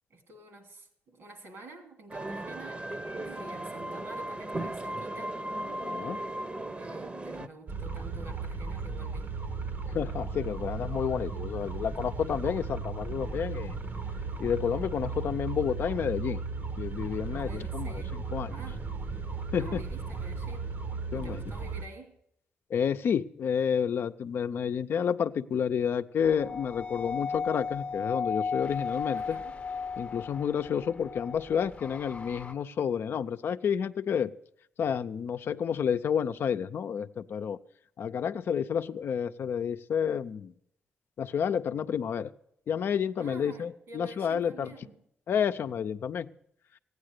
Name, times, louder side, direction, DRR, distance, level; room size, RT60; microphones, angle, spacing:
voice 1, 0.1-5.4 6.7-9.3 12.2-12.4 17.3-18.3 18.5-18.9 19.6-20.8 21.1-22.2 29.1-29.6 43.2-45.0, right 2 dB, 75° right, 2.8 m, -48 dB
sound 1, 2.1-7.5, right 1 dB, 30° right, 0.9 m, -36 dB
voice 2, 5.7-6.2 9.8-13.8 14.4-16.4 16.8-18.0 18.3-18.6 19.5-19.8 21.1-21.4 22.7-29.4 30.0-34.3 34.8-37.6 38.0-40.5 41.2-42.3 42.7-44.7 45.3-46.3, left 7 dB, 65° left, 0.6 m, -30 dB
sound 2, 7.7-21.8, right 4 dB, 55° right, 1.0 m, -36 dB
sound 3, 26.2-32.5, left 5 dB, 35° left, 0.8 m, -35 dB
15.0 x 9.6 x 6.6 m
cardioid pair, 70°, 4 cm